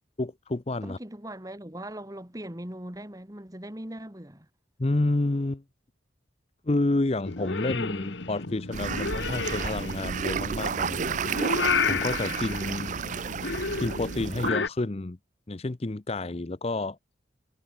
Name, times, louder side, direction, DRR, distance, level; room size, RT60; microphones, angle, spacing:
voice 1, 0.2-1.0 4.8-5.6 6.7-11.2 11.9-13.0 13.8-15.2 15.5-17.0, left 2 dB, 30° left, 0.6 m, -29 dB
voice 2, 0.8-4.5, right 1 dB, 20° right, 2.0 m, -40 dB
Purr / Meow, 7.2-14.7, left 4 dB, 70° left, 1.5 m, -31 dB
sound 1, 8.7-14.5, right 6 dB, 40° right, 0.4 m, -32 dB
head